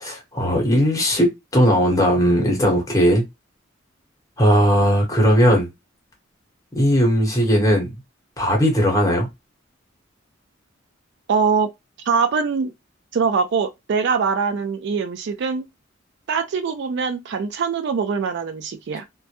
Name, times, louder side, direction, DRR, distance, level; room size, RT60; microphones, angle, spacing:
voice 1, 0.0-3.2 4.4-5.7 6.7-7.9 8.4-9.3, equal, 20° left, 0.9 m, -18 dB
voice 2, 11.3-11.7 12.1-12.7 13.1-15.7 16.3-19.0, right 5 dB, 60° right, 0.4 m, -22 dB
2.2 x 2.1 x 2.8 m
head